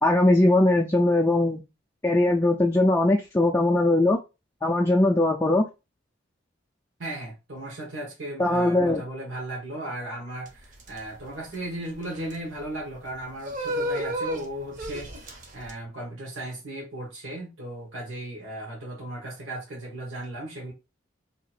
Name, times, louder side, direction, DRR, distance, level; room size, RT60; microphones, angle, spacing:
voice 1, 0.0-1.6 2.0-4.2 4.6-5.7 8.4-9.0, left 1 dB, 15° left, 0.3 m, -20 dB
voice 2, 7.0-20.7, right 1 dB, 75° right, 1.2 m, -36 dB
sound 1, 10.4-15.7, equal, 40° right, 0.7 m, -34 dB
2.8 x 2.5 x 4.2 m
head